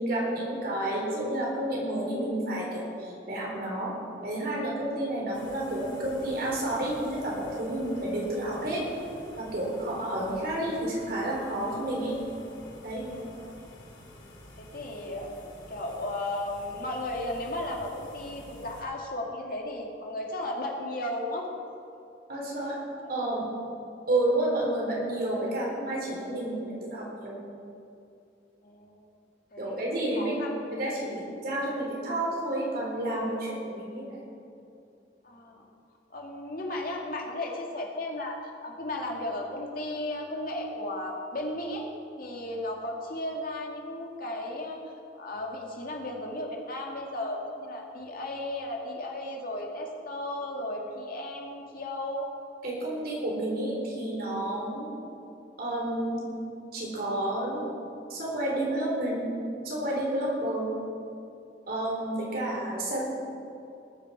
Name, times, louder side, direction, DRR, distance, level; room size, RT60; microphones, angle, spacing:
voice 1, 0.0-4.0 4.2-8.8 9.4-12.2 12.8-13.0 22.3-22.8 23.1-23.4 24.1-27.4 29.6-30.4 30.7-34.2 52.6-54.9 55.6-56.3 56.7-57.7 58.1-59.3 59.6-60.7 61.7-63.0, right 1 dB, 55° right, -3 dB, 3.9 m, -30 dB
sound 1, 5.3-18.8, left 1 dB, 80° left, 3.9 m, -49 dB
voice 2, 13.0-13.5 14.6-21.5 28.6-29.0 29.5-30.6 35.2-35.7 36.1-41.9 42.2-44.9 45.2-52.3 54.5-54.6, left 1 dB, 50° left, 0 dB, 2.1 m, -35 dB
20.0 x 7.6 x 5.9 m, 2.6 s
head